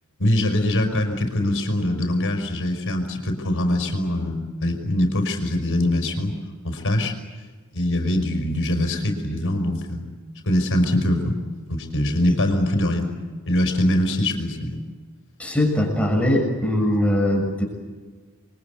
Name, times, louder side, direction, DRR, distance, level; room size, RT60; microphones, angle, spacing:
voice 1, 0.2-6.3 6.6-7.1 7.7-10.0 10.4-11.4 11.7-13.1 13.5-14.8, left 1 dB, 60° left, 5 dB, 5.3 m, -23 dB
voice 2, 15.4-17.6, left 1 dB, 5° left, 1 dB, 6.8 m, -21 dB
29.0 x 23.5 x 8.4 m, 1.4 s
head